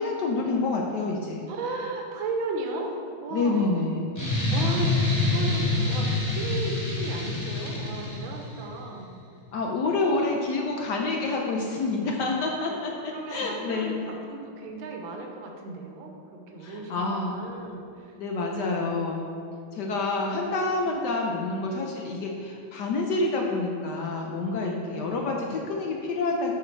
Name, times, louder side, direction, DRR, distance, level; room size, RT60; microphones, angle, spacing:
voice 1, 0.0-1.5 3.3-4.2 9.5-14.0 16.6-17.4 18.2-19.3 19.7-26.5, left 3 dB, 70° left, 0 dB, 1.1 m, -28 dB
voice 2, 1.5-3.8 4.5-9.1 9.9-10.4 12.6-12.9 13.1-18.2 18.5-19.0 20.2-20.5 20.8-20.9 24.9-25.6, right 3 dB, 75° right, 2 dB, 1.6 m, -36 dB
sound 1, 4.2-8.6, left 2 dB, 15° left, 1.9 m, -26 dB
8.4 x 4.7 x 4.6 m, 2.4 s
omnidirectional pair, 2.3 m